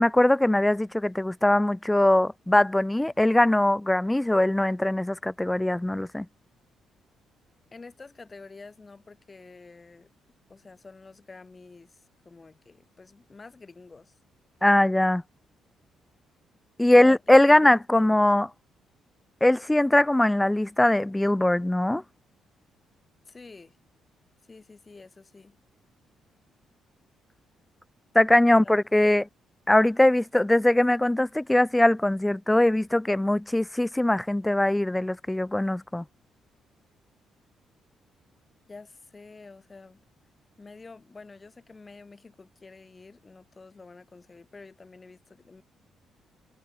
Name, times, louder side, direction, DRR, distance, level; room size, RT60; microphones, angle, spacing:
voice 1, 0.0-6.3 14.6-15.2 16.8-18.5 19.4-22.0 28.1-29.3 29.7-36.0, left 1 dB, 10° left, 1.2 m, -21 dB
voice 2, 7.7-10.1 10.5-14.1 16.9-17.2 17.5-18.3 23.3-23.8 24.5-25.6 28.4-28.7 38.7-40.0 40.6-45.6, left 3 dB, 25° left, 4.8 m, -48 dB
cardioid pair, 90°, 0 cm